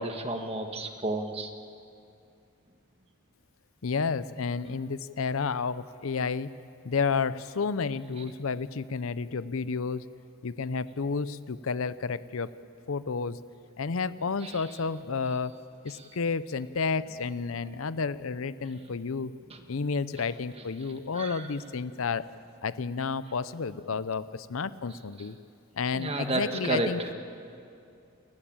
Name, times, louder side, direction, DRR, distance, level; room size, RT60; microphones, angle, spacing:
voice 1, 0.0-1.5 14.4-14.6 15.9-16.0 19.5-19.6 21.1-21.5 25.9-26.9, right 1 dB, 25° right, 5 dB, 1.6 m, -31 dB
voice 2, 3.8-6.5 6.8-10.0 10.4-12.5 12.9-13.4 13.8-15.5 15.8-19.3 19.7-22.3 22.6-25.4 25.8-27.0, left 5 dB, 75° left, 15 dB, 0.6 m, -31 dB
29.0 x 14.5 x 8.9 m, 2.5 s
head